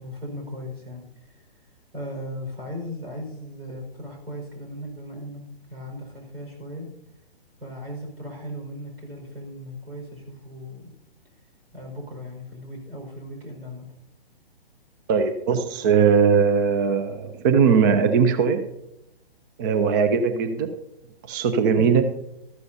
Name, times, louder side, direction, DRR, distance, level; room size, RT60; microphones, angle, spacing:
voice 1, 0.0-1.4 1.9-5.4 5.7-6.9 7.6-10.9 11.7-13.9 21.8-22.0, equal, 80° right, 1 dB, 4.9 m, -37 dB
voice 2, 15.1-18.6 19.6-20.7 21.2-22.0, right 6 dB, 20° right, 10 dB, 0.4 m, -20 dB
13.5 x 12.0 x 2.7 m, 0.84 s
figure-of-eight pair, 125°, 30 cm